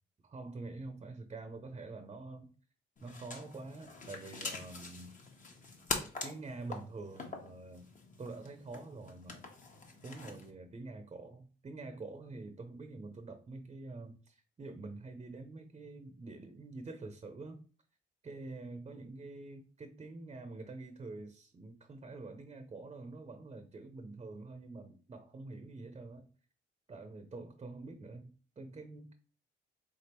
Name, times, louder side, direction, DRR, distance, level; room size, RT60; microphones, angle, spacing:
voice 1, 0.2-2.5 3.0-5.1 6.2-7.9 8.2-9.4 10.0-17.6 18.2-26.3 26.9-29.1, right 3 dB, 30° right, 0.6 m, -46 dB
sound 1, 3.0-10.5, left 3 dB, 40° left, 1.1 m, -44 dB
3.5 x 3.5 x 4.4 m
cardioid pair, 90°, 20 cm